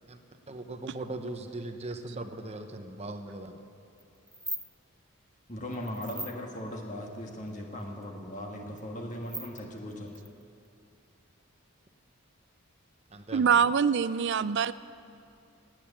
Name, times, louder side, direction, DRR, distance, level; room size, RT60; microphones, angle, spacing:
voice 1, 0.5-3.6 13.1-13.7, right 2 dB, 30° right, 6 dB, 0.9 m, -39 dB
sound 1, 4.0-4.1 4.3-4.7 5.7-6.3 7.5-7.6 7.8-7.9 8.7-8.8 9.1-10.7, right 1 dB, ahead, 0.5 m, -38 dB
voice 2, 5.5-10.2, left 1 dB, 35° left, 1 dB, 1.6 m, -38 dB
voice 3, 13.3-14.7, right 7 dB, 55° right, 16 dB, 0.4 m, -24 dB
18.0 x 9.2 x 8.6 m, 2.5 s
head